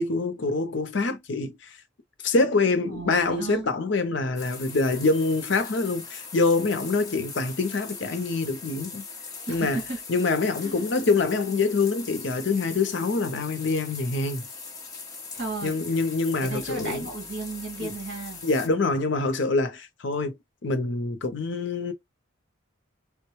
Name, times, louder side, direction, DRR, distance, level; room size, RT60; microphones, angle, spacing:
voice 1, 0.0-1.8 2.2-9.0 9.5-9.8 10.1-14.5 15.6-17.1 17.8-17.9 18.4-20.3 20.6-21.9, left 3 dB, 60° left, 0.6 m, -25 dB
voice 2, 2.9-3.7 9.5-10.0 10.6-10.9 15.3-15.7 16.4-18.4, right 3 dB, 55° right, 1.9 m, -34 dB
sound 1, 4.4-18.7, left 4 dB, 20° left, 0.8 m, -40 dB
3.5 x 2.2 x 2.9 m
head